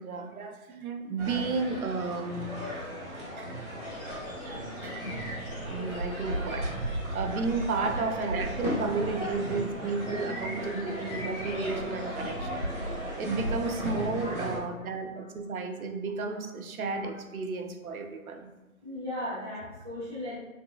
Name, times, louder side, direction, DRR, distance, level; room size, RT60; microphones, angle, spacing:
voice 1, 0.0-2.6 3.4-3.5 4.8-4.9 5.4-12.7 13.2-18.5, right 4 dB, 85° right, 4 dB, 0.6 m, -33 dB
sound 1, 1.2-14.6, equal, 55° right, 1.3 m, -35 dB
sound 2, 3.8-13.3, left 1 dB, 40° left, 1.0 m, -47 dB
voice 2, 7.6-8.1 9.7-9.8 10.3-10.4 13.2-13.3 14.1-14.5 14.8-14.9 15.1-15.2 18.8-20.4, left 1 dB, 15° right, -18 dB, 0.6 m, -38 dB
3.5 x 2.3 x 2.4 m, 1.1 s
hypercardioid pair, 165°, 42 cm